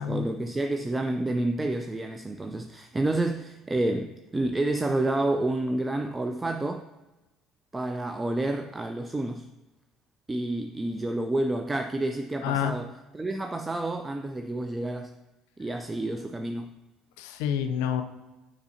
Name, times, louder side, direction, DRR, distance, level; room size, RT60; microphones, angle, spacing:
voice 1, 0.0-6.9 7.7-9.5 10.3-15.1 15.6-16.7, right 2 dB, 20° right, 0.4 m, -29 dB
voice 2, 12.4-12.7 17.2-18.0, left 9 dB, 75° left, 0.5 m, -28 dB
6.8 x 5.1 x 2.7 m
hypercardioid pair, 65°, 0 cm